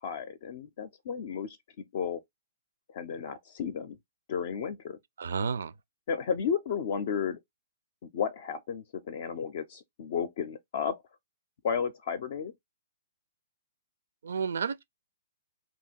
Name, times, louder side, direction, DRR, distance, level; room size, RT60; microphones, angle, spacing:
voice 1, 0.0-1.6 1.9-2.2 2.9-4.0 4.3-5.0 6.1-7.4 8.0-11.0 11.6-12.5, left 7 dB, 45° left, 0.5 m, -33 dB
voice 2, 5.2-5.7 14.2-14.8, right 6 dB, 60° right, 0.4 m, -31 dB
2.8 x 2.8 x 4.0 m
figure-of-eight pair, 120°, 0 cm